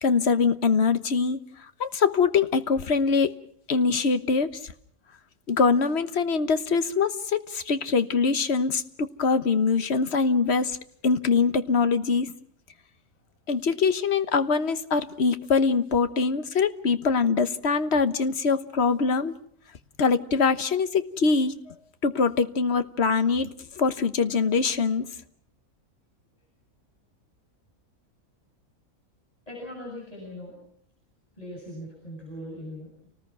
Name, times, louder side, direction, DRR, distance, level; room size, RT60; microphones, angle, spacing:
voice 1, 0.0-1.4 1.8-3.3 3.7-4.6 5.5-10.8 11.0-12.3 13.5-19.4 20.0-21.7 22.0-25.1, left 5 dB, 55° left, 11 dB, 1.4 m, -23 dB
voice 2, 29.5-30.6 31.4-33.1, equal, 25° left, -3 dB, 8.2 m, -40 dB
30.0 x 19.5 x 6.0 m, 0.63 s
omnidirectional pair, 1.4 m